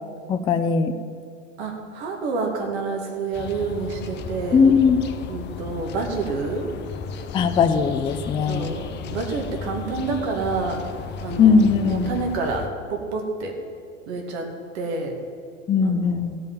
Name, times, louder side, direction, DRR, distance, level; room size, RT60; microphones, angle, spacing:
voice 1, 0.3-0.9 4.5-5.0 7.3-8.7 11.4-12.1 15.7-16.4, left 5 dB, 15° left, 8 dB, 0.4 m, -19 dB
voice 2, 1.6-4.7 5.3-6.7 8.4-10.9 11.2-13.6 14.1-15.2 15.8-16.2, right 4 dB, 55° right, 2 dB, 2.3 m, -28 dB
sound 1, 3.3-12.7, left 6 dB, 30° left, 0.8 m, -35 dB
14.5 x 5.2 x 8.9 m, 2.3 s
figure-of-eight pair, 85°, 39 cm